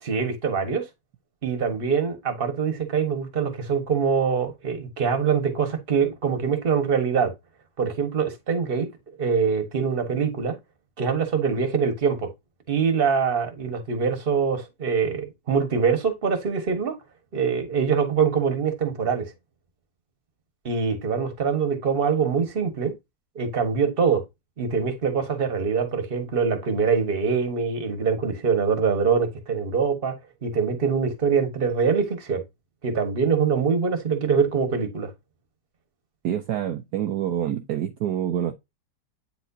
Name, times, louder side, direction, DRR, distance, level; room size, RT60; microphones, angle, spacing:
voice 1, 0.0-0.9 1.4-7.3 7.8-8.9 9.2-10.5 11.0-12.3 12.7-17.0 17.3-19.3 20.6-22.9 23.3-24.2 24.6-32.4 32.8-35.1, right 6 dB, 35° right, 1.5 m, -24 dB
voice 2, 36.2-38.5, right 10 dB, 70° right, 1.2 m, -27 dB
9.1 x 4.2 x 2.7 m
omnidirectional pair, 2.0 m